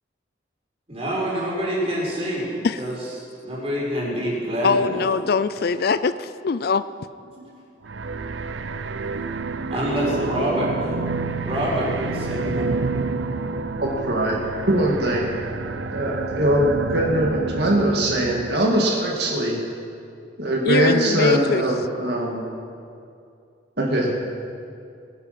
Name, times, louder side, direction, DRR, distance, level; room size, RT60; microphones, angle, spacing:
voice 1, 0.9-2.5 2.8-3.0 3.4-5.1 9.7-11.0 11.4-12.7, equal, 35° right, -4 dB, 4.6 m, -26 dB
voice 2, 4.6-6.8 20.6-21.6, left 5 dB, 55° left, 14 dB, 0.4 m, -22 dB
sound 1, 7.8-18.6, right 3 dB, 85° right, 0.7 m, -29 dB
voice 3, 13.8-14.4 14.7-15.3 15.9-19.6 20.4-22.4 23.8-24.2, right 1 dB, 60° right, -2 dB, 2.0 m, -21 dB
20.5 x 10.5 x 5.8 m, 2.5 s
head